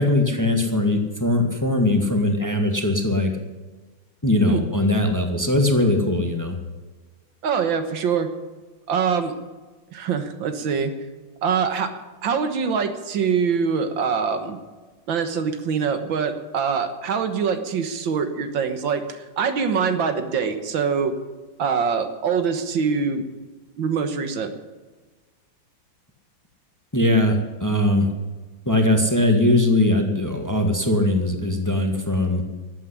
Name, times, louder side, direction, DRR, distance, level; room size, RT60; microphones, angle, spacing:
voice 1, 0.0-3.3 4.2-6.5 26.9-28.1 28.6-32.4, left 1 dB, 10° left, 4 dB, 1.5 m, -20 dB
voice 2, 7.4-8.3 8.9-9.3 9.9-10.9 11.4-11.9 12.2-14.6 15.1-21.1 21.6-23.3 23.8-24.5, right 6 dB, 75° right, 8 dB, 2.0 m, -24 dB
13.5 x 8.9 x 9.9 m, 1.3 s
omnidirectional pair, 2.1 m